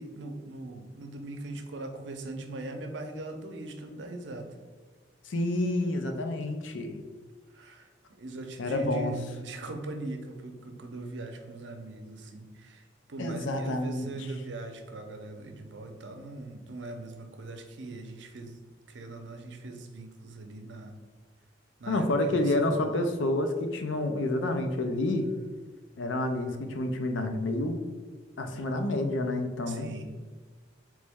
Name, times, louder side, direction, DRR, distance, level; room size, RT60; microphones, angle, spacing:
voice 1, 0.0-4.6 7.5-18.6 18.9-20.9 21.8-23.1 29.7-30.0, right 2 dB, 75° right, 5 dB, 0.6 m, -40 dB
voice 2, 5.3-7.0 8.6-9.1 13.2-14.1 21.9-25.3 26.0-27.8 28.4-29.9, left 2 dB, 85° left, 6 dB, 0.5 m, -29 dB
4.0 x 3.2 x 3.5 m, 1.4 s
head